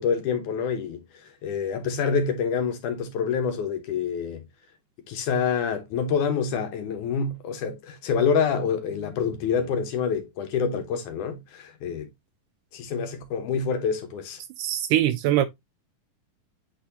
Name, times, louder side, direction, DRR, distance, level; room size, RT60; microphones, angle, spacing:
voice 1, 0.0-4.5 5.1-12.1 12.7-14.4, left 6 dB, 70° left, 2.3 m, -27 dB
voice 2, 14.6-15.5, right 12 dB, 80° right, 2.0 m, -22 dB
8.8 x 4.1 x 2.7 m
omnidirectional pair, 4.1 m